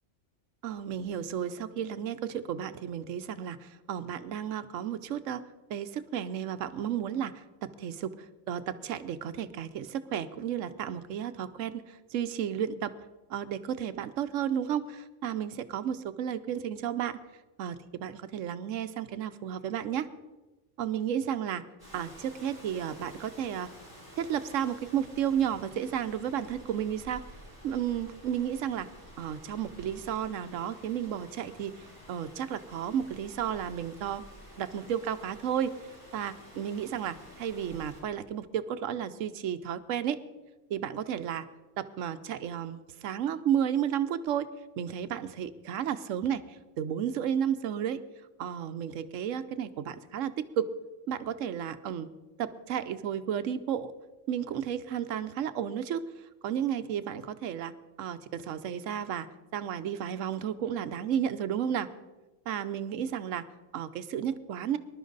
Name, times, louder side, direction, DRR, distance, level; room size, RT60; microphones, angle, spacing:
voice 1, 0.6-5.4 5.7-12.9 13.3-17.2 17.6-20.1 20.8-21.6 21.9-23.7 24.2-27.2 27.6-28.9 29.2-34.2 34.6-35.7 36.1-40.2 40.7-41.4 41.8-44.5 44.8-46.4 46.8-48.0 48.4-50.7 51.1-52.1 52.4-53.9 54.3-56.0 56.4-57.7 58.0-59.3 59.5-61.9 62.5-63.4 63.7-64.8, right 9 dB, 85° right, 12 dB, 1.1 m, -32 dB
Rain, 21.8-38.0, equal, 15° left, 4.5 m, -51 dB
20.5 x 11.5 x 3.9 m, 1.2 s
omnidirectional pair, 1.3 m